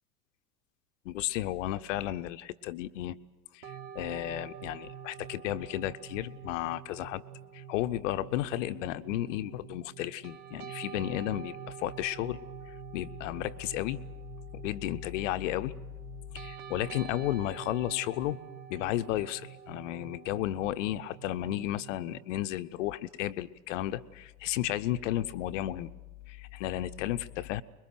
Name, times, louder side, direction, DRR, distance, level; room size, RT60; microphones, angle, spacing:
voice 1, 1.0-3.2 3.5-7.2 7.5-12.4 12.7-14.0 14.5-15.7 16.3-18.4 18.7-25.9 26.3-27.6, left 14 dB, 50° left, 11 dB, 1.0 m, -33 dB
sound 1, 3.6-22.2, right 8 dB, 65° right, 1.6 m, -46 dB
25.0 x 22.0 x 7.9 m, 1.2 s
figure-of-eight pair, 85°, 46 cm